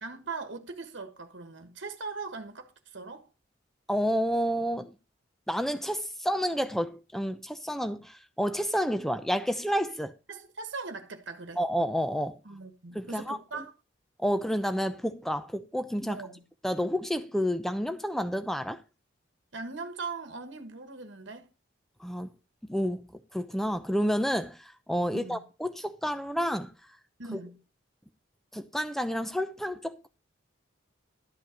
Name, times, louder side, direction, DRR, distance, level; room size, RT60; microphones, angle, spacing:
voice 1, 0.0-3.3 10.3-11.6 12.4-13.7 16.1-16.4 19.5-21.5 25.1-25.4 27.2-27.6, right 4 dB, 70° right, 1.3 m, -40 dB
voice 2, 3.9-4.9 5.5-10.1 11.6-12.4 12.9-13.6 14.2-16.2 16.6-18.8 22.0-22.3 22.6-23.1 23.3-26.7 27.3-27.4 28.5-30.1, equal, ahead, 0.7 m, -30 dB
12.0 x 5.7 x 5.0 m
head